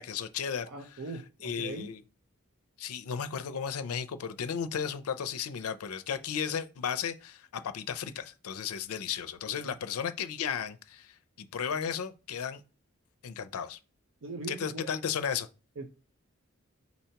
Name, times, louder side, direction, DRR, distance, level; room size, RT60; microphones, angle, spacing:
voice 1, 0.0-0.7 1.4-2.0 2.8-12.6 13.2-13.8 14.5-15.5, left 7 dB, 90° left, 0.4 m, -34 dB
voice 2, 0.7-1.9 9.5-9.7 14.2-14.9 15.8-15.9, right 3 dB, 70° right, 0.6 m, -40 dB
4.1 x 2.8 x 4.4 m
head